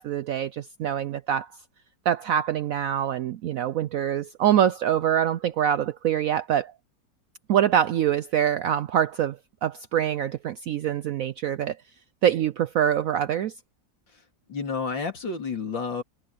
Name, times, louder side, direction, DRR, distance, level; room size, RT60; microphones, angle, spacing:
voice 1, 0.0-1.5 2.1-6.7 7.5-11.8 12.2-13.5, right 10 dB, 75° right, 0.7 m, -24 dB
voice 2, 14.1-16.0, left 4 dB, 90° left, 3.9 m, -31 dB
omnidirectional pair, 2.0 m